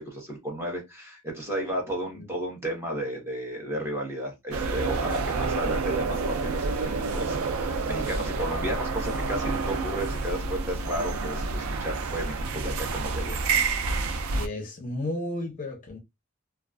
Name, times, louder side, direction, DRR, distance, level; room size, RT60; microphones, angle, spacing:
voice 1, 0.0-13.4, right 1 dB, 10° right, 0.8 m, -33 dB
sound 1, 4.5-14.5, right 4 dB, 80° right, 0.4 m, -29 dB
voice 2, 14.3-16.0, left 1 dB, 40° left, 0.5 m, -33 dB
2.3 x 2.2 x 2.4 m
head